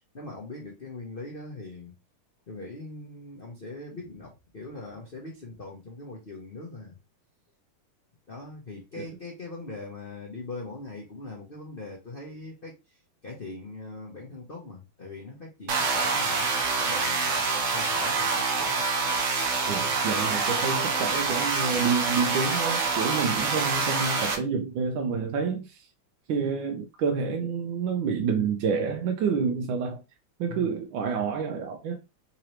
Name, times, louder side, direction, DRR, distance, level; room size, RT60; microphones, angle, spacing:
voice 1, 0.1-1.9 2.5-7.0 8.3-12.7 13.2-17.4 17.7-18.8 30.5-30.7, left 2 dB, 75° left, 0.5 m, -41 dB
sound 1, 15.7-24.3, right 4 dB, 55° right, 0.8 m, -26 dB
voice 2, 19.7-25.9 26.3-30.0 30.4-32.0, right 5 dB, 75° right, 1.2 m, -28 dB
3.8 x 2.9 x 3.0 m
omnidirectional pair, 2.4 m